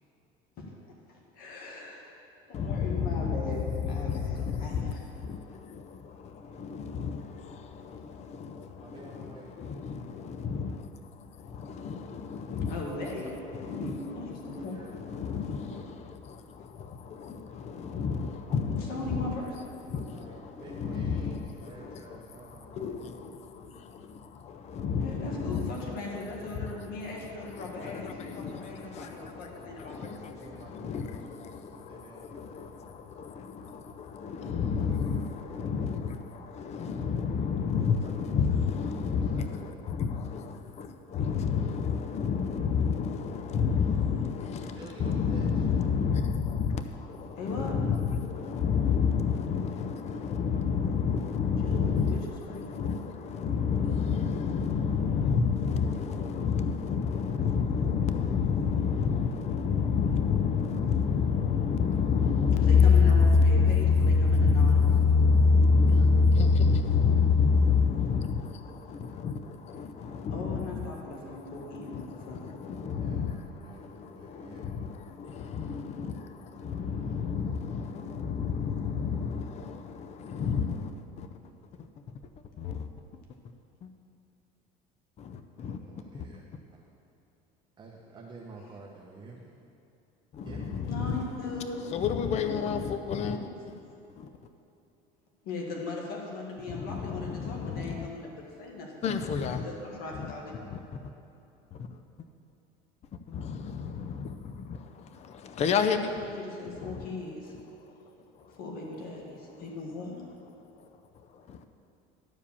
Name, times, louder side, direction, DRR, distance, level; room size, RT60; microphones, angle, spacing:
voice 1, 1.1-2.2 2.4-5.0 12.7-13.3 13.7-14.8 18.8-19.5 25.0-30.3 34.6-35.1 47.3-47.7 51.4-52.2 52.5-52.9 62.5-65.2 66.0-66.1 70.3-72.5 90.8-91.8 92.3-92.9 93.3-93.5 95.4-98.3 98.6-99.3 99.6-100.6 106.3-107.5 108.6-110.2, left 2 dB, 60° left, 1.9 m, -39 dB
voice 2, 2.5-81.4 81.8-82.2 82.6-82.9 83.4-83.5 83.8-83.9 85.2-85.8 86.1-86.4 90.3-93.8 94.1-94.5 96.7-98.1 99.0-99.7 100.1-101.0 101.7-102.3 103.1-107.1 107.6-108.6 110.6-111.7, left 5 dB, 40° left, 0.6 m, -29 dB
voice 3, 8.8-9.6 14.5-15.9 18.4-18.7 20.0-23.0 29.5-32.7 33.6-34.0 34.7-35.1 38.0-39.5 44.6-45.6 73.0-74.7 85.5-86.8 87.8-89.5 90.4-90.8, right 3 dB, 25° right, 1.0 m, -50 dB
12.0 x 4.9 x 7.0 m
cardioid pair, 120°, 18 cm